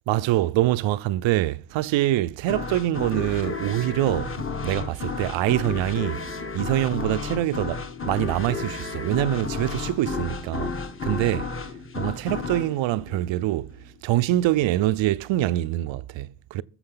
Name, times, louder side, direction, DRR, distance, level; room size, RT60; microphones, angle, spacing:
voice 1, 0.1-6.2 6.5-10.8 11.0-11.5 11.9-13.7 14.0-16.6, right 15 dB, 65° right, 0.6 m, -25 dB
sound 1, 2.5-13.9, left 4 dB, 25° left, 1.3 m, -32 dB
21.5 x 7.3 x 3.9 m
cardioid pair, 115°, 49 cm